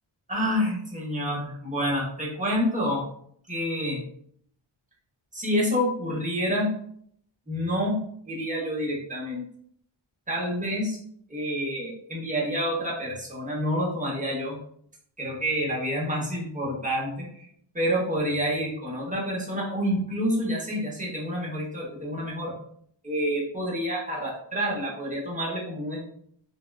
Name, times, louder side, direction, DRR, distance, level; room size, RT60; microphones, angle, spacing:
voice 1, 0.3-3.0 3.5-4.0 5.3-6.7 7.5-9.4 10.3-11.0 11.3-14.6 15.2-17.4 17.7-22.5 23.0-26.1, equal, 15° right, -3 dB, 0.8 m, -28 dB
3.4 x 2.2 x 2.2 m, 0.66 s
wide cardioid pair, 95°, 49 cm